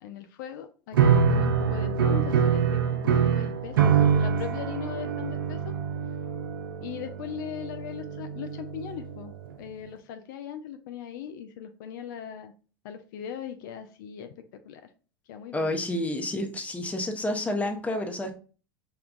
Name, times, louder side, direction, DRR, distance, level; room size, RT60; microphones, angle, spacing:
voice 1, 0.0-5.7 6.8-12.5 12.8-14.3 14.6-14.8 15.3-15.8, left 9 dB, 65° left, 0.4 m, -39 dB
sound 1, 0.9-9.3, right 7 dB, 75° right, 0.5 m, -25 dB
voice 2, 15.5-18.3, left 1 dB, 10° left, 0.7 m, -29 dB
5.3 x 2.2 x 2.4 m
hypercardioid pair, 80°, 12 cm